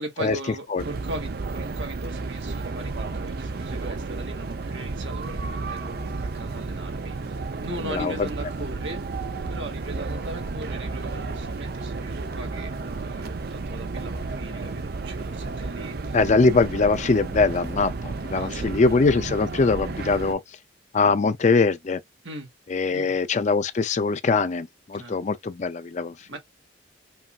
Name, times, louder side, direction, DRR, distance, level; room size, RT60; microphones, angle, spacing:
voice 1, 0.0-9.0 9.5-16.2 18.3-18.8 22.2-22.5 22.9-23.2 24.9-25.2 26.3-26.4, right 1 dB, 70° right, 1.9 m, -39 dB
sound 1, 0.8-20.3, right 3 dB, 55° right, 0.5 m, -32 dB
voice 2, 7.8-8.3 16.1-20.4 20.9-22.0 22.7-26.1, left 4 dB, 40° left, 0.4 m, -22 dB
5.3 x 2.6 x 2.4 m
head